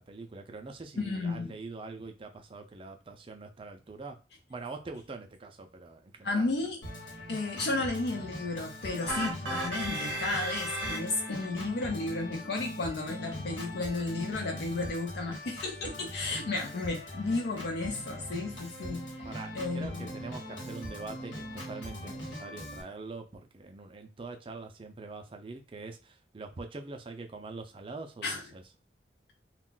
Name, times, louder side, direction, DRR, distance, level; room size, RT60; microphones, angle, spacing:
voice 1, 0.0-4.2 4.5-6.5 9.0-9.2 19.2-28.6, right 3 dB, 30° right, 0.4 m, -44 dB
voice 2, 1.0-1.6 6.2-6.8 7.3-19.3 19.5-20.1 28.2-28.4, left 3 dB, 60° left, 0.4 m, -33 dB
Organ, 6.8-22.8, equal, 90° left, 1.2 m, -41 dB
sound 1, 9.1-11.5, right 1 dB, 75° right, 0.7 m, -35 dB
2.3 x 2.2 x 3.7 m
head